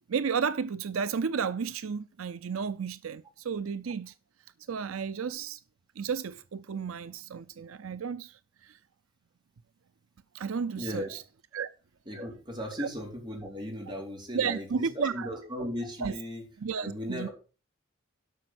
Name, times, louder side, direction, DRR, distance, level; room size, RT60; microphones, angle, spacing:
voice 1, 0.1-4.1 4.7-5.6 6.0-8.8 10.3-11.2 11.5-11.7 12.8-12.9 14.3-15.3 16.0-16.2 16.6-17.3, right 6 dB, 85° right, 0.5 m, -32 dB
voice 2, 10.8-11.1 12.1-16.4 16.8-17.3, equal, 25° right, 4.1 m, -37 dB
12.0 x 6.3 x 6.0 m
head